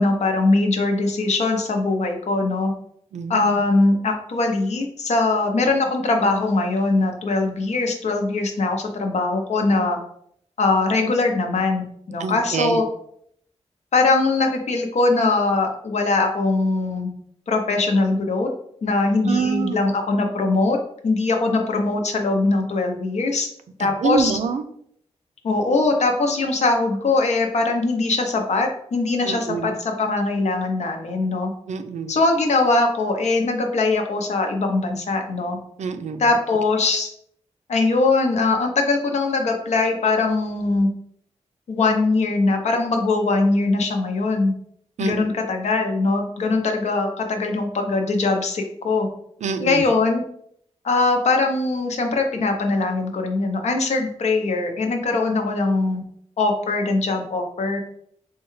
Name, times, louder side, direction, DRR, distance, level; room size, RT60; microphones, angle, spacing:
voice 1, 0.0-2.7 3.3-10.0 10.6-12.8 13.9-17.1 17.5-18.5 18.8-20.8 21.0-23.5 23.8-24.4 25.4-31.5 32.1-35.6 36.2-37.1 37.7-40.9 41.7-44.5 45.0-49.1 49.6-50.2 50.8-56.0 56.4-57.8, left 3 dB, 75° left, 3 dB, 0.6 m, -21 dB
voice 2, 3.1-3.6 12.2-12.8 19.2-19.8 23.8-24.6 29.2-29.8 31.7-32.2 35.8-36.2 45.0-45.2 49.4-49.8, right 5 dB, 80° right, 9 dB, 0.4 m, -26 dB
4.5 x 2.3 x 3.1 m, 0.68 s
wide cardioid pair, 145°, 12 cm